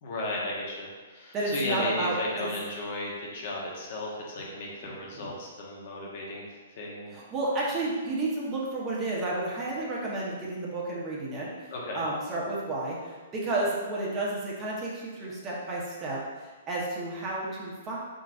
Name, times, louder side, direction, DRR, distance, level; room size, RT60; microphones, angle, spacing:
voice 1, 0.0-7.1 11.7-12.0, left 2 dB, 55° left, -3 dB, 1.1 m, -35 dB
voice 2, 1.3-2.5 4.8-5.3 7.1-18.0, right 2 dB, 25° right, -5 dB, 1.1 m, -32 dB
4.4 x 3.9 x 2.5 m, 1.4 s
hypercardioid pair, 140°, 0 cm